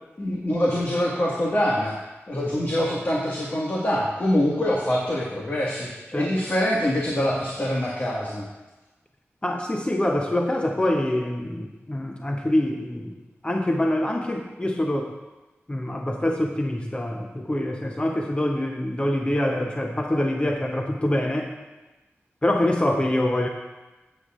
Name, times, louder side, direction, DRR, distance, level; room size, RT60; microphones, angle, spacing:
voice 1, 0.2-1.9 2.3-8.5, left 1 dB, 50° left, -5 dB, 1.8 m, -24 dB
voice 2, 9.4-13.1 13.4-15.2 15.7-21.6 22.4-23.5, left 1 dB, 25° left, 2 dB, 0.8 m, -25 dB
14.5 x 8.3 x 2.5 m, 1.1 s
wide cardioid pair, 60°, 5 cm